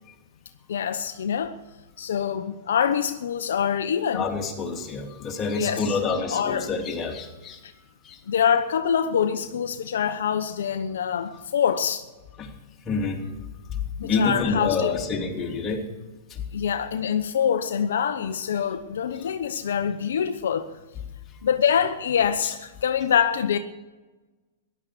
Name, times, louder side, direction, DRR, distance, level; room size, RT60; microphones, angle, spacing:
voice 1, 0.7-1.6 2.0-4.2 5.5-6.0 6.3-6.7 7.6-7.7 8.3-12.1 14.0-14.9 16.5-20.7 21.4-23.6, left 8 dB, 75° left, 0.8 m, -25 dB
voice 2, 4.1-8.2 12.4-12.5 12.8-13.2 13.7-15.9 16.3-16.4, left 4 dB, 25° left, 3.2 m, -28 dB
15.0 x 11.5 x 6.9 m
hypercardioid pair, 120°, 0 cm